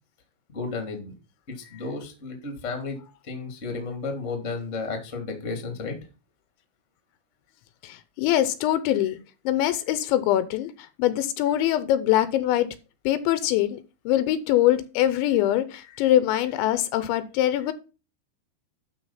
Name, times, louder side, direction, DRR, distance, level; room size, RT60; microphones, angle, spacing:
voice 1, 0.5-1.1 1.6-3.0 3.2-5.9, left 3 dB, 25° left, 1.7 m, -33 dB
voice 2, 7.8-9.2 9.5-10.7 11.0-12.7 13.1-13.8 14.1-17.7, left 12 dB, 80° left, 3.0 m, -23 dB
11.5 x 4.8 x 5.7 m
omnidirectional pair, 5.4 m